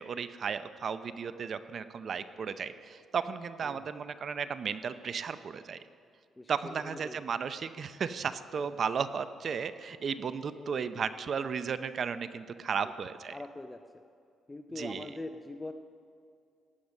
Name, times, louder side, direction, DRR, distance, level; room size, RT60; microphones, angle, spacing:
voice 1, 0.0-5.8 6.5-13.3 14.8-15.1, right 6 dB, 50° right, 12 dB, 0.6 m, -34 dB
voice 2, 6.4-7.2 8.6-8.7 10.1-10.2 10.5-11.1 12.8-12.9 13.3-13.8 14.5-15.7, left 2 dB, 15° left, 7 dB, 0.5 m, -43 dB
16.0 x 9.6 x 6.5 m, 2.4 s
cardioid pair, 110°, 0 cm